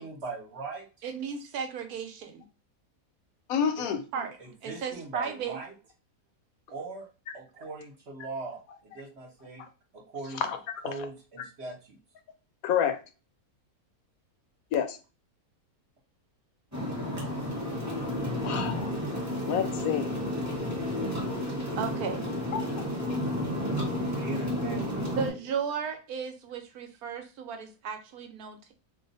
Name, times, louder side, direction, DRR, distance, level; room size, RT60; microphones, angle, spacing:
voice 1, 0.0-0.8 3.8-3.9 4.4-5.7 6.7-7.1 7.3-9.6 9.9-10.4 10.8-12.0 23.8-25.4, right 3 dB, 50° right, 1.1 m, -40 dB
voice 2, 1.0-2.4 3.8-5.6 21.8-22.2 25.1-28.7, right 6 dB, 80° right, 1.2 m, -35 dB
voice 3, 3.5-4.0 10.4-10.6 10.8-10.9 12.6-13.0 14.7-15.0 17.9-18.1 18.4-18.9 19.5-20.1 22.5-22.9, left 8 dB, 75° left, 1.0 m, -28 dB
sound 1, 16.7-25.3, left 1 dB, 15° right, 1.0 m, -31 dB
2.6 x 2.3 x 3.9 m
omnidirectional pair, 1.6 m